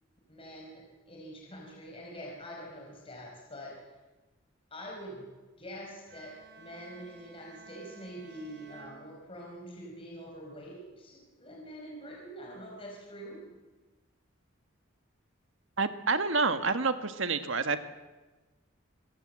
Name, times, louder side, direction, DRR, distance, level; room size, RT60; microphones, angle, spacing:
voice 1, 0.3-3.8 4.7-5.3 5.6-13.4, equal, 25° left, -1 dB, 4.6 m, -45 dB
Bowed string instrument, 6.1-9.8, right 5 dB, 55° right, 5.4 m, -54 dB
voice 2, 15.8-17.9, right 4 dB, 70° right, 9 dB, 1.7 m, -28 dB
26.5 x 22.5 x 7.6 m, 1.2 s
head